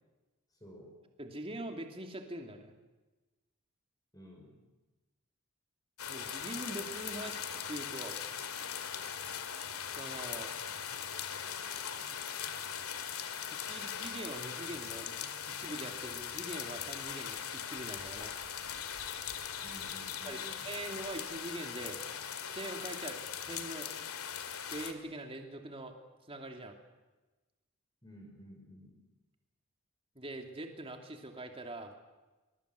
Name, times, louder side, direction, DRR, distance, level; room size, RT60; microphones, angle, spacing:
voice 1, 0.5-0.9 4.1-4.6 19.6-20.8 28.0-29.0, equal, 15° left, 1 dB, 5.4 m, -53 dB
voice 2, 1.2-2.7 6.1-8.2 9.9-10.5 13.5-15.2 15.6-18.3 20.2-22.0 22.4-23.9 24.7-25.9 26.3-26.7 30.1-31.9, right 1 dB, 25° right, 4 dB, 2.7 m, -43 dB
sound 1, 6.0-24.9, left 8 dB, 75° left, 2.3 m, -40 dB
23.5 x 22.0 x 8.3 m, 1.2 s
head